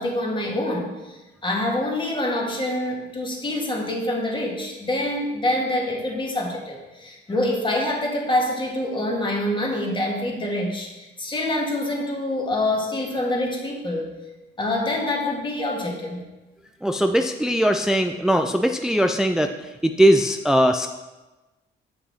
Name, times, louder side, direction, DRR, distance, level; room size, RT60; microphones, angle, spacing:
voice 1, 0.0-14.1 14.6-16.2, left 1 dB, 25° left, -1 dB, 1.9 m, -26 dB
voice 2, 16.8-20.9, equal, 5° right, 6 dB, 0.4 m, -20 dB
7.7 x 5.6 x 4.2 m, 1.1 s
cardioid pair, 90°, 20 cm